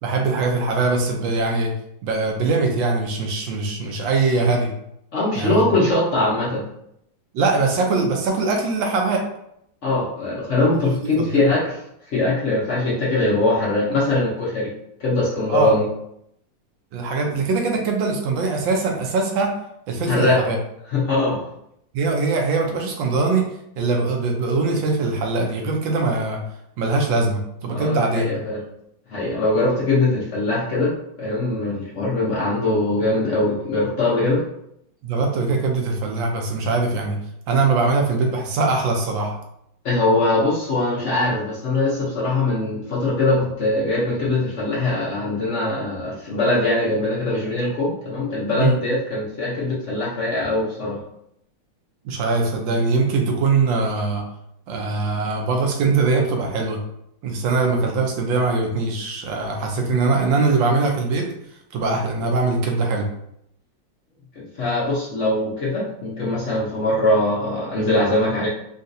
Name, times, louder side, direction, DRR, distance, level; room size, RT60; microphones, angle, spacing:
voice 1, 0.0-1.7 2.0-4.7 5.3-5.7 7.3-9.3 10.8-11.5 15.5-15.7 16.9-19.5 19.9-20.6 21.9-23.5 23.8-26.4 26.8-28.3 35.0-37.2 37.5-39.3 48.4-48.8 52.0-54.2 54.7-56.8 57.2-61.3 61.7-63.1, right 3 dB, 90° right, 2 dB, 1.4 m, -22 dB
voice 2, 5.1-6.7 9.8-11.8 12.1-14.7 15.0-15.9 20.1-20.4 20.9-21.4 27.7-28.6 29.1-30.9 31.2-34.4 39.8-51.0 64.4-68.5, left 2 dB, 55° left, -6 dB, 0.9 m, -21 dB
3.8 x 2.4 x 2.6 m, 0.75 s
omnidirectional pair, 2.0 m